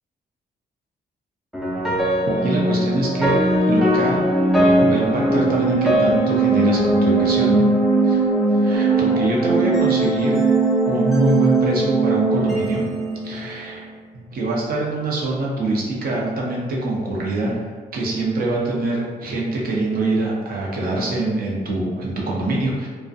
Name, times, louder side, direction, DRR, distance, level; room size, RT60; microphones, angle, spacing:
sound 1, 1.5-13.8, right 2 dB, ahead, 0.4 m, -19 dB
voice 1, 2.2-3.3 3.7-4.2 4.8-7.6 8.0-10.4 10.9-12.8 13.2-13.8 14.1-17.6 17.9-22.9, right 2 dB, 60° right, -3 dB, 0.6 m, -24 dB
2.5 x 2.1 x 2.5 m, 1.5 s
cardioid pair, 100°, 17 cm